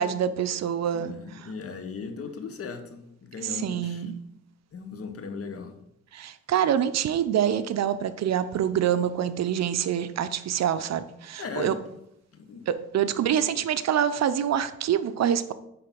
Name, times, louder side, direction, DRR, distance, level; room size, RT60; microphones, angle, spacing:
voice 1, 0.0-1.1 3.4-4.2 6.1-11.7 12.7-15.5, right 9 dB, 60° right, 13 dB, 0.7 m, -26 dB
voice 2, 0.9-4.1 4.7-5.8 11.4-11.7 12.3-12.6 13.3-13.4, left 5 dB, 50° left, 6 dB, 1.4 m, -38 dB
10.0 x 3.9 x 6.0 m, 0.80 s
cardioid pair, 90°, 30 cm